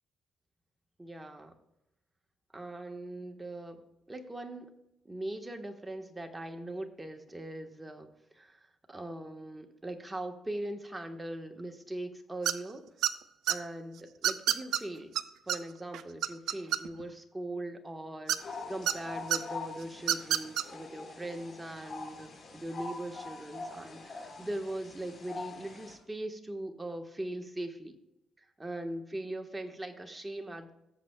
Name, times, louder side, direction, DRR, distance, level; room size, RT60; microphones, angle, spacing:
voice 1, 1.0-1.5 2.5-4.7 5.0-12.8 13.5-15.1 15.5-28.0 28.4-30.7, right 1 dB, 15° right, 5 dB, 1.2 m, -40 dB
sound 1, 12.5-12.7 13.0-13.6 14.2-14.8 15.2-15.3 15.5-15.6 15.9-17.1 18.3-18.9 19.3-19.4 20.0-20.6, right 11 dB, 80° right, 0.5 m, -28 dB
sound 2, 18.4-25.9, left 3 dB, 45° left, 4.0 m, -44 dB
17.0 x 7.6 x 2.2 m, 0.87 s
cardioid pair, 90°, 0 cm